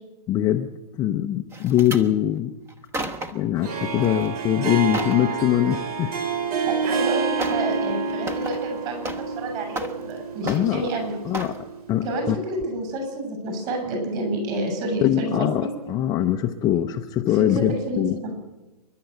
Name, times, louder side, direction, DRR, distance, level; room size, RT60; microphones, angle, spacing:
voice 1, 0.3-2.5 3.3-6.2 10.4-10.9 11.2-11.6 11.9-12.4 15.0-18.2, left 12 dB, 20° left, 4 dB, 0.6 m, -23 dB
sound 1, 1.5-2.1 2.7-3.5 4.0-4.3 4.6-5.2 6.6-6.7 7.4-7.7 8.0-9.4 9.7-10.2 10.5-10.9 11.3-11.6 12.1-12.3 12.6-12.7, right 1 dB, 10° right, 1.1 m, -33 dB
Harp, 3.5-11.8, right 5 dB, 60° right, 3.9 m, -28 dB
voice 2, 6.7-9.1 9.4-11.1 12.0-15.7 17.5-18.3, right 2 dB, 35° right, 4 dB, 7.3 m, -29 dB
28.0 x 11.5 x 8.0 m, 1.1 s
hypercardioid pair, 150°, 21 cm